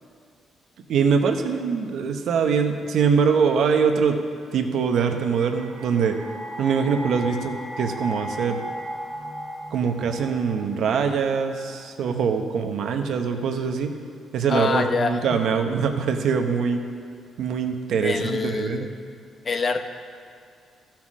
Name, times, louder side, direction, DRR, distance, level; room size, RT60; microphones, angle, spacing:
voice 1, 0.9-4.2 4.5-6.2 6.6-8.6 9.7-14.0 14.3-16.8 17.4-18.9, right 6 dB, 70° right, 5 dB, 0.9 m, -23 dB
sound 1, 4.8-11.9, equal, 5° left, 1.7 m, -36 dB
voice 2, 14.5-15.4 18.0-18.9 19.4-19.8, left 4 dB, 40° left, 7 dB, 0.8 m, -25 dB
13.5 x 5.9 x 6.2 m, 2.3 s
cardioid pair, 90°, 0 cm